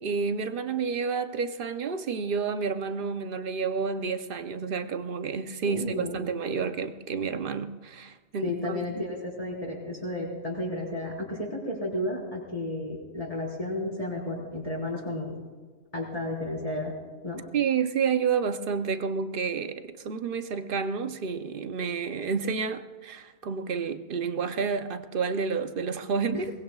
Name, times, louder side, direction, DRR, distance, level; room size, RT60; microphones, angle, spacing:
voice 1, 0.0-8.8 17.5-26.5, right 5 dB, 55° right, 9 dB, 0.9 m, -30 dB
voice 2, 5.6-6.2 8.4-15.4 15.9-16.9 17.2-17.4 26.3-26.5, left 1 dB, 30° left, -3 dB, 4.8 m, -32 dB
23.0 x 20.5 x 2.4 m, 1.4 s
omnidirectional pair, 1.2 m